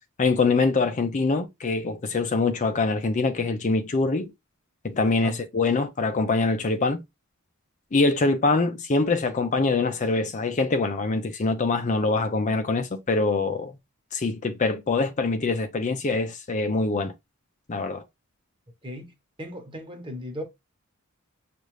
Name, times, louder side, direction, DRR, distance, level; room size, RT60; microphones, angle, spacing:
voice 1, 0.2-4.3 4.8-7.0 7.9-13.7 14.1-17.1 17.7-18.0, left 3 dB, 35° left, 0.5 m, -24 dB
voice 2, 18.8-19.1 19.4-20.4, left 1 dB, 25° right, 1.2 m, -36 dB
6.7 x 2.5 x 3.1 m
head